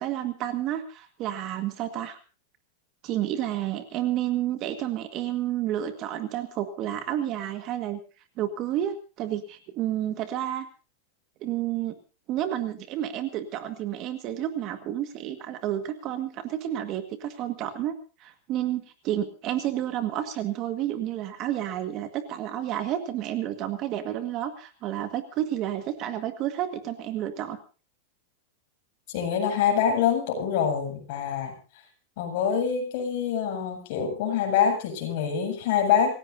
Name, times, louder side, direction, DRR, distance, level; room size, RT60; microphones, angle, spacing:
voice 1, 0.0-2.2 3.0-8.0 8.4-10.7 11.4-11.9 12.3-17.9 18.2-27.6, right 12 dB, 35° right, 8 dB, 1.8 m, -30 dB
voice 2, 29.1-31.5 32.2-36.2, left 8 dB, 50° left, 2 dB, 7.7 m, -25 dB
27.5 x 16.5 x 2.8 m, 0.34 s
supercardioid pair, 165°, 0 cm